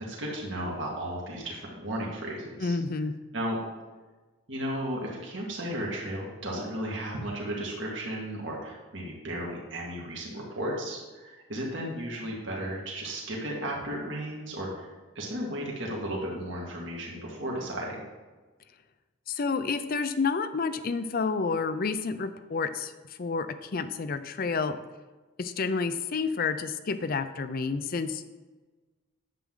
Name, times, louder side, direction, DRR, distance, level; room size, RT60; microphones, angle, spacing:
voice 1, 0.1-2.8 3.3-3.6 4.5-18.0, right 1 dB, 60° right, -3 dB, 1.9 m, -34 dB
voice 2, 2.6-3.2 19.3-22.9 23.2-24.8 25.4-28.4, left 4 dB, 45° left, 12 dB, 0.5 m, -29 dB
10.0 x 7.5 x 3.8 m, 1.3 s
head